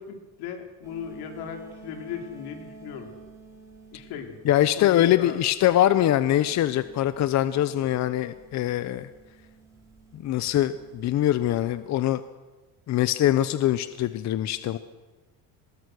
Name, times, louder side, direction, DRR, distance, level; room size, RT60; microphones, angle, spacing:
voice 1, 0.0-3.1 3.9-4.4 4.8-5.4, left 7 dB, 85° left, 4 dB, 3.8 m, -37 dB
sound 1, 0.8-11.8, right 3 dB, 10° right, 5.6 m, -50 dB
voice 2, 4.4-9.1 10.1-12.2 12.9-14.8, left 12 dB, 50° left, 13 dB, 0.8 m, -23 dB
24.0 x 20.0 x 6.4 m, 1.2 s
cardioid pair, 140°, 37 cm